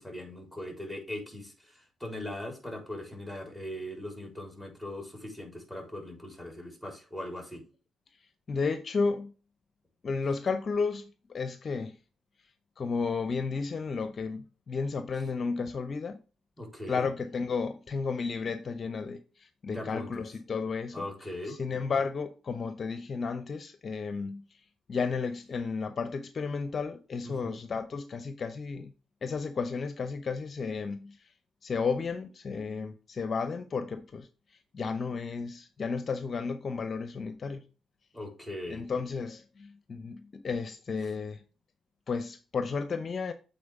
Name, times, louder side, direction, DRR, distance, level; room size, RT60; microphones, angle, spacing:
voice 1, 0.0-7.6 16.6-17.1 19.7-20.2 20.9-21.6 27.2-27.6 38.1-38.8, left 1 dB, ahead, 3.8 m, -40 dB
voice 2, 8.5-9.3 10.0-12.0 12.8-16.2 16.9-21.1 21.5-24.6 24.9-28.9 29.2-31.3 31.6-34.3 34.7-37.6 38.7-41.4 42.1-43.3, left 5 dB, 50° left, 0.6 m, -33 dB
8.5 x 4.2 x 3.5 m
supercardioid pair, 55°, 0 cm